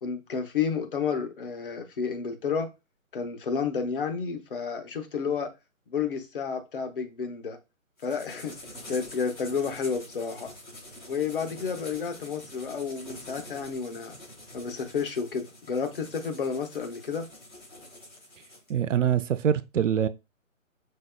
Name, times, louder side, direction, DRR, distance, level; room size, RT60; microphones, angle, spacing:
voice 1, 0.0-2.7 3.1-5.5 5.9-7.6 8.0-8.5 8.9-10.5 11.1-14.2 14.5-17.3, left 6 dB, 40° left, 0.8 m, -31 dB
sound 1, 8.0-18.7, left 1 dB, 85° left, 2.9 m, -46 dB
voice 2, 18.7-20.1, right 9 dB, 65° right, 0.5 m, -24 dB
5.3 x 3.9 x 2.2 m
figure-of-eight pair, 145°, 41 cm